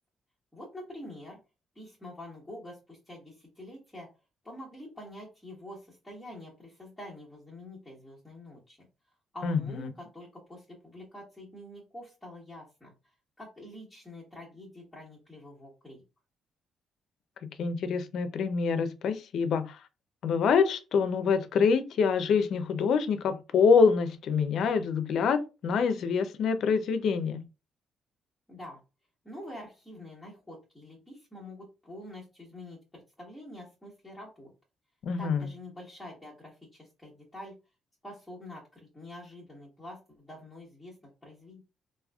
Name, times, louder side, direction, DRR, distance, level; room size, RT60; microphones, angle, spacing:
voice 1, 0.5-1.4 1.7-4.1 4.4-8.8 9.3-16.0 28.5-28.8 29.2-34.5 35.2-37.5 38.0-41.6, left 1 dB, 5° left, 1.2 m, -46 dB
voice 2, 17.4-19.8 20.2-27.4 35.0-35.5, left 5 dB, 70° left, 0.5 m, -26 dB
3.3 x 2.6 x 2.3 m
cardioid pair, 90°, 0 cm